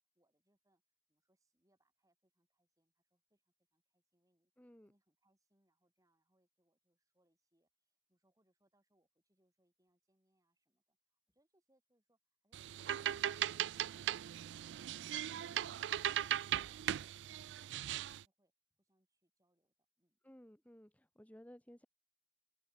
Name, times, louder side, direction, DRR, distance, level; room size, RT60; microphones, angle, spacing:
voice 1, 0.1-0.8 1.1-4.5 4.8-15.0 18.8-20.2, right 1 dB, 20° right, 7.9 m, -81 dB
voice 2, 4.6-4.9 20.2-21.9, equal, 10° left, 1.4 m, -58 dB
sound 1, 12.5-18.2, right 11 dB, 85° right, 0.3 m, -38 dB
open air
head